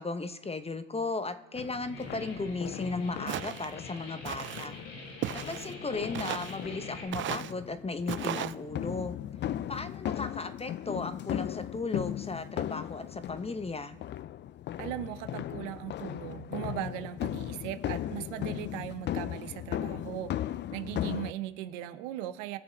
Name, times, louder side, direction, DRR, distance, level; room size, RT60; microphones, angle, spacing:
voice 1, 0.0-4.8 5.3-9.2 9.7-14.0 20.8-20.9, left 3 dB, 15° left, 10 dB, 0.9 m, -36 dB
sound 1, 1.5-21.3, left 11 dB, 30° left, 0.4 m, -37 dB
sound 2, 1.8-7.0, left 2 dB, 90° left, 4.8 m, -45 dB
Walk footsteps, 3.3-3.7 4.2-4.7 5.2-5.7 6.1-6.6 7.1-7.5 8.1-8.5, right 12 dB, 35° right, 0.4 m, -35 dB
voice 2, 14.8-20.3 20.7-22.6, right 13 dB, 80° right, 12 dB, 0.9 m, -38 dB
21.0 x 7.0 x 4.0 m, 1.1 s
hypercardioid pair, 75°, 37 cm